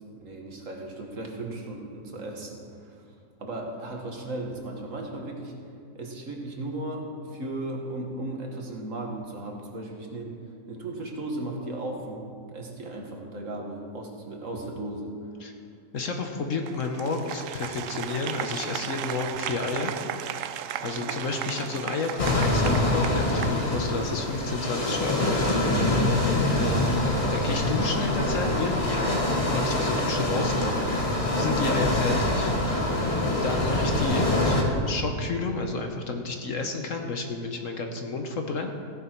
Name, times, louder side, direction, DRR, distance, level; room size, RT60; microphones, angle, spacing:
voice 1, 0.0-3.0 3.4-5.5 5.9-10.4 10.7-15.3 20.8-21.1, right 2 dB, 55° right, 1 dB, 1.8 m, -36 dB
voice 2, 15.9-19.9 20.8-25.5 26.6-27.0 27.3-30.8 31.4-32.5 33.4-34.6 34.8-38.7, left 3 dB, 60° left, 4 dB, 1.2 m, -31 dB
Applause, 16.7-24.2, right 10 dB, 70° right, 0.8 m, -35 dB
sound 1, 22.2-34.6, left 1 dB, 20° left, 1.5 m, -25 dB
15.0 x 10.5 x 4.5 m, 2.3 s
omnidirectional pair, 1.7 m